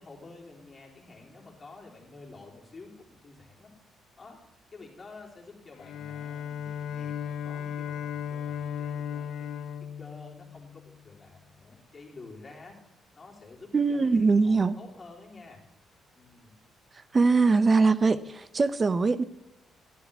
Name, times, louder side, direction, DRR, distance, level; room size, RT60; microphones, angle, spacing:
voice 1, 0.0-3.7 4.2-4.4 4.7-9.5 10.0-12.8 13.2-14.2 14.4-15.6 16.1-16.5, left 3 dB, 30° left, -3 dB, 3.5 m, -49 dB
Bowed string instrument, 5.7-11.0, left 8 dB, 75° left, 0.3 m, -36 dB
voice 2, 13.7-14.8 17.1-19.2, right 4 dB, 30° right, 15 dB, 0.6 m, -22 dB
11.5 x 11.0 x 3.5 m, 0.88 s
cardioid pair, 90°, 0 cm